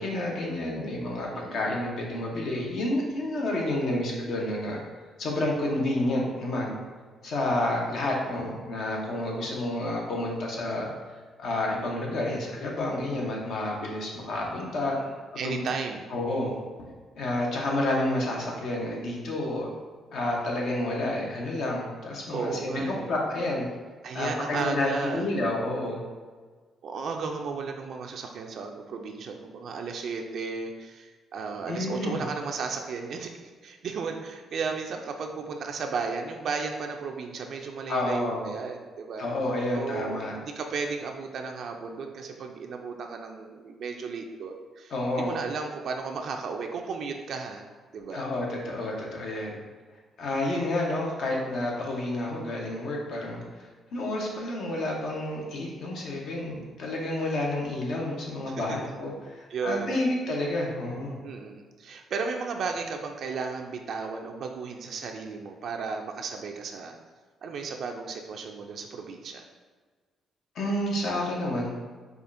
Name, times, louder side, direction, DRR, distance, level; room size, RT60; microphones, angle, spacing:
voice 1, 0.0-4.8 5.2-6.7 7.2-10.9 11.4-15.0 15.4-15.6 16.1-16.5 17.1-19.7 20.1-23.7 24.1-26.0 31.7-32.2 37.9-38.5 39.2-40.3 44.9-45.4 48.1-49.5 50.2-61.2 70.5-71.7, left 1 dB, 70° left, -1 dB, 0.8 m, -29 dB
voice 2, 1.3-1.6 14.9-16.1 22.3-23.2 24.0-25.3 26.8-39.3 39.7-47.6 47.9-48.3 49.5-49.7 58.5-58.8 59.5-60.0 61.2-67.0 67.4-69.5, right 5 dB, 65° right, 3 dB, 0.3 m, -34 dB
4.8 x 2.4 x 2.5 m, 1.5 s
cardioid pair, 90°, 0 cm